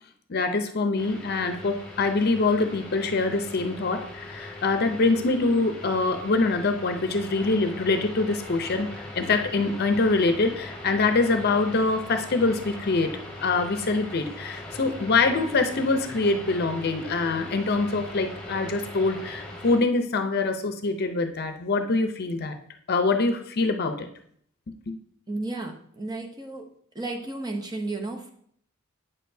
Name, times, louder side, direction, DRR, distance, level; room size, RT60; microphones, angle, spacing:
voice 1, 0.3-22.6 22.9-24.1 24.7-25.0, left 3 dB, 50° left, 7 dB, 0.6 m, -24 dB
sound 1, 1.0-19.8, left 1 dB, 5° left, 1.8 m, -40 dB
voice 2, 25.3-26.7 26.9-28.3, right 2 dB, 20° right, 3 dB, 0.8 m, -33 dB
8.7 x 6.5 x 2.7 m, 0.65 s
head